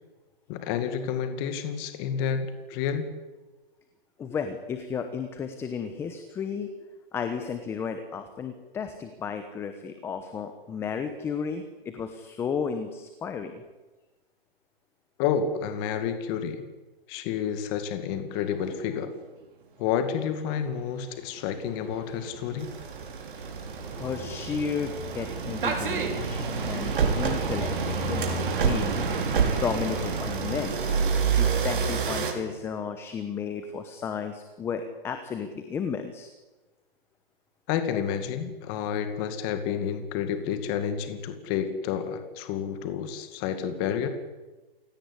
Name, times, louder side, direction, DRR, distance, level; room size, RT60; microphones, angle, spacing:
voice 1, 0.5-3.1 15.2-16.6 17.1-19.1 19.8-22.7 37.7-44.1, left 8 dB, 25° left, 9 dB, 2.1 m, -30 dB
voice 2, 4.2-6.7 7.1-13.5 23.9-29.0 29.6-30.7 31.3-36.3, left 6 dB, 10° left, 8 dB, 1.0 m, -33 dB
sound 1, 20.6-20.8 21.4-32.3, right 5 dB, 60° right, 5.8 m, -28 dB
28.5 x 17.0 x 9.9 m, 1.2 s
hypercardioid pair, 160°, 30 cm